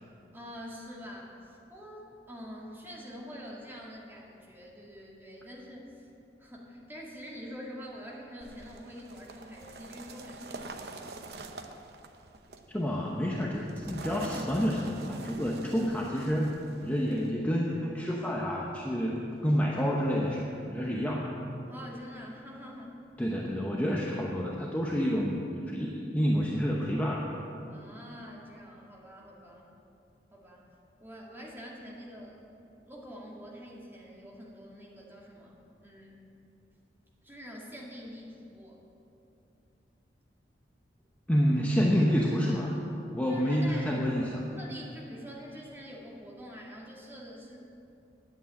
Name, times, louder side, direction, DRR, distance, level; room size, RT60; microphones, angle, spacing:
voice 1, 0.3-6.1 6.4-11.2 21.7-23.0 27.7-29.7 30.3-30.7 31.0-32.4 32.9-35.6 35.8-36.2 37.2-38.8 43.3-44.0 44.6-47.6, equal, 10° right, -3 dB, 1.9 m, -46 dB
sound 1, 8.4-17.3, right 3 dB, 65° right, 0.8 m, -45 dB
voice 2, 12.7-16.6 16.8-21.3 23.2-27.3 41.3-42.8 43.1-44.5, equal, 10° left, -3 dB, 0.8 m, -29 dB
10.0 x 8.6 x 8.6 m, 2.8 s
head